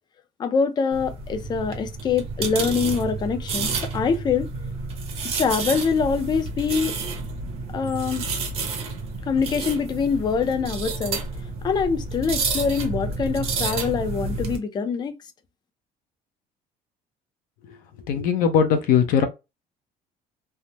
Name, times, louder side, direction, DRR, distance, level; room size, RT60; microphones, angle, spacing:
voice 1, 0.4-4.5 5.3-7.0 7.7-8.2 9.3-11.2 11.6-15.1, left 5 dB, 25° left, 0.5 m, -24 dB
sound 1, 0.9-14.6, right 4 dB, 40° right, 0.9 m, -30 dB
voice 2, 18.1-19.3, left 7 dB, 65° left, 0.7 m, -19 dB
3.4 x 2.0 x 2.8 m
cardioid pair, 170°, 16 cm